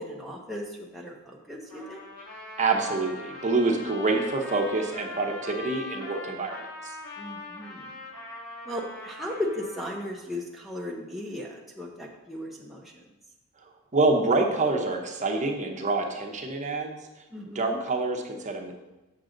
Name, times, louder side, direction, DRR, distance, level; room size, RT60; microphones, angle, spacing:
voice 1, 0.0-2.1 7.2-8.0 8.7-13.0 17.3-17.8, left 1 dB, ahead, -3 dB, 0.7 m, -36 dB
Trumpet, 1.7-10.0, left 2 dB, 90° left, 2.2 m, -41 dB
voice 2, 2.6-6.9 13.9-17.0 17.4-18.7, right 3 dB, 35° right, 2 dB, 0.8 m, -26 dB
7.0 x 6.4 x 3.8 m, 1.0 s
head